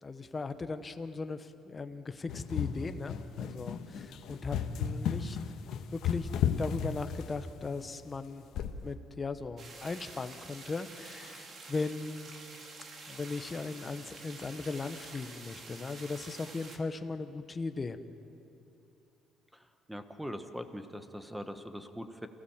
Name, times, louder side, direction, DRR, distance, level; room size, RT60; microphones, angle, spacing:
voice 1, 0.0-5.4 5.9-6.3 6.6-8.4 8.8-12.3 13.1-18.0, left 3 dB, 20° left, 10 dB, 1.0 m, -38 dB
sound 1, 2.3-7.6 8.5-8.9, left 8 dB, 65° left, 1.4 m, -34 dB
sound 2, 9.6-16.8, right 3 dB, 40° right, 2.3 m, -48 dB
voice 2, 19.9-22.3, equal, ahead, 8 dB, 1.1 m, -41 dB
29.0 x 16.5 x 7.3 m, 2.8 s
cardioid pair, 150°, 0 cm